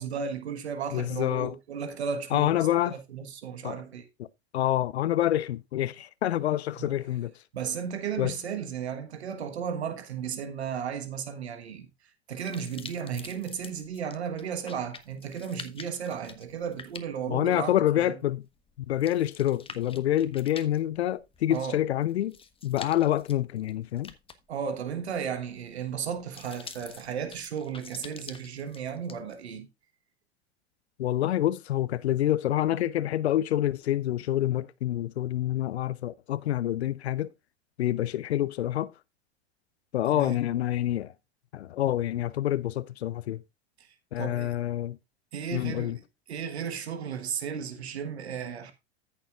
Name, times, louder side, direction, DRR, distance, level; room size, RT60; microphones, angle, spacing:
voice 1, 0.0-2.6 2.8-4.1 6.8-6.9 7.5-11.9 12.3-18.1 21.5-21.8 24.5-29.7 40.1-40.4 43.8-44.6 45.3-46.0 46.3-48.7, right 7 dB, 80° right, 1.4 m, -34 dB
voice 2, 0.9-1.5 2.3-3.0 3.6-3.8 4.5-7.3 8.2-8.3 17.3-18.4 18.9-22.4 22.6-24.1 31.0-37.3 37.8-38.9 39.9-41.1 41.5-43.4 44.1-45.0 45.5-46.0, left 13 dB, 80° left, 0.6 m, -27 dB
sound 1, 12.4-29.4, left 5 dB, 15° left, 1.2 m, -47 dB
14.0 x 6.8 x 2.5 m
hypercardioid pair, 90°, 32 cm